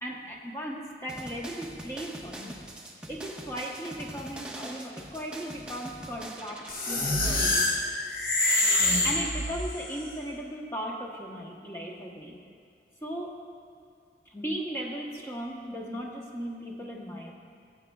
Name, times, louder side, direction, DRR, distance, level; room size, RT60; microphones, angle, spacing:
voice 1, 0.0-2.6 3.1-7.7 9.0-12.4 13.0-13.4 14.3-17.3, equal, 15° left, -2 dB, 1.0 m, -37 dB
sound 1, 1.1-6.7, right 1 dB, 5° right, 0.6 m, -43 dB
sound 2, 6.7-9.9, left 2 dB, 50° left, 1.1 m, -26 dB
15.0 x 8.7 x 2.4 m, 2.3 s
head